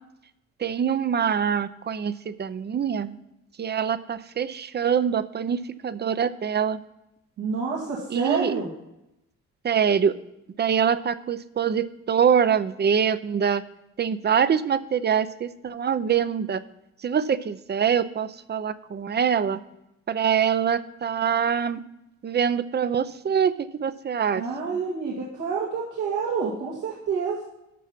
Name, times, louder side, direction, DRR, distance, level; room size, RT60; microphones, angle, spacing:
voice 1, 0.6-3.2 3.6-6.8 8.1-8.5 9.6-10.2 10.6-13.6 14.0-16.6 17.0-19.6 20.1-21.8 22.2-24.4, right 7 dB, 35° right, 15 dB, 0.6 m, -24 dB
voice 2, 7.4-8.7 24.3-27.4, right 5 dB, 80° right, -4 dB, 2.2 m, -28 dB
12.5 x 5.6 x 5.9 m, 0.88 s
cardioid pair, 90°, 30 cm